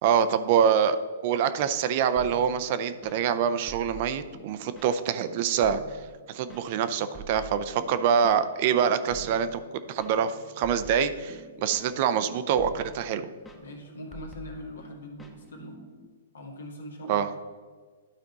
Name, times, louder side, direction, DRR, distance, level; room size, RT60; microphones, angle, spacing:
voice 1, 0.0-1.0 1.2-9.6 9.9-13.3 17.1-17.3, right 8 dB, 45° right, 12 dB, 0.5 m, -25 dB
sound 1, 2.2-16.1, right 2 dB, 10° left, 0.9 m, -48 dB
voice 2, 13.6-15.8 16.3-17.4, left 1 dB, 80° left, 1 dB, 1.9 m, -42 dB
11.5 x 4.3 x 4.0 m, 1.5 s
hypercardioid pair, 120°, 0 cm